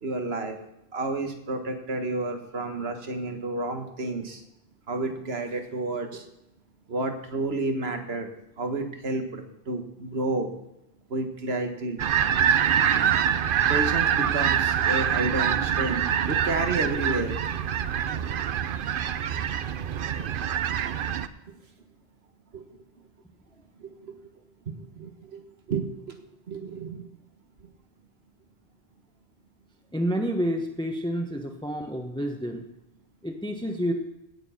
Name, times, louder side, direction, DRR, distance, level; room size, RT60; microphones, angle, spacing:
voice 1, 0.0-0.6 0.9-4.4 4.9-6.2 6.9-8.3 8.6-10.5 11.1-12.0 13.7-17.4 21.5-21.6 22.5-22.8 23.8-24.2 24.7-27.0, right 2 dB, 75° right, 6 dB, 1.7 m, -31 dB
sound 1, 12.0-21.3, right 9 dB, 60° right, 0.7 m, -25 dB
voice 2, 29.9-32.6 33.2-33.9, equal, 5° left, 3 dB, 1.0 m, -29 dB
16.5 x 7.1 x 5.7 m, 0.84 s
omnidirectional pair, 1.0 m